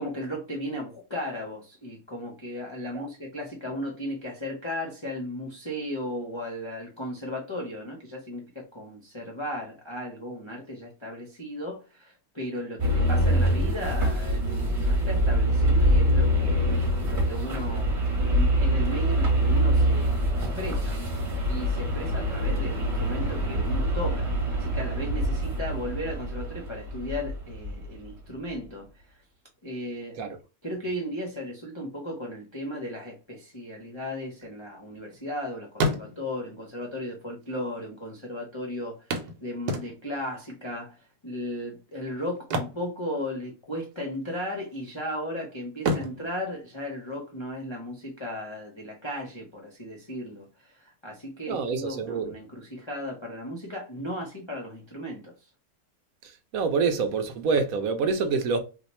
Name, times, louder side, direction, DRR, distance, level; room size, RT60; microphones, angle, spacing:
voice 1, 0.0-16.7 17.1-18.0 18.2-29.2 29.6-30.2 30.6-55.5, left 1 dB, 40° left, 0.4 m, -36 dB
sound 1, 12.8-28.0, equal, 35° right, 1.1 m, -25 dB
sound 2, 34.3-35.4 35.7-36.5 37.4-37.5 37.8-37.9 39.1-40.3 42.3-43.7 43.9-44.2 44.7-45.3 45.8-47.5 49.5-49.6 50.0-50.1, right 1 dB, 90° right, 1.3 m, -31 dB
voice 2, 51.5-52.3 56.5-58.6, right 4 dB, 70° right, 1.0 m, -26 dB
2.8 x 2.2 x 4.1 m
omnidirectional pair, 1.6 m